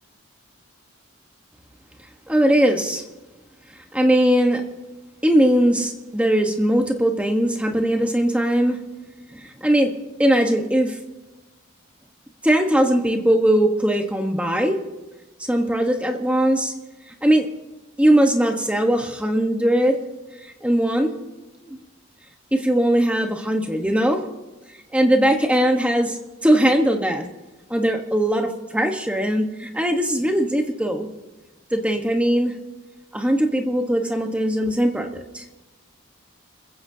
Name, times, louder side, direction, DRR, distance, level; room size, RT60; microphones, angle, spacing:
voice 1, 2.3-3.0 3.9-4.6 5.2-8.8 9.3-9.9 10.2-11.0 12.4-14.8 15.4-16.7 17.2-17.5 18.0-20.0 20.6-21.1 21.6-21.7 22.5-24.2 24.9-26.2 26.4-27.2 27.7-31.1 31.7-32.5 33.1-35.4, right 1 dB, 5° right, 4 dB, 1.2 m, -20 dB
29.0 x 15.0 x 2.8 m, 1.1 s
head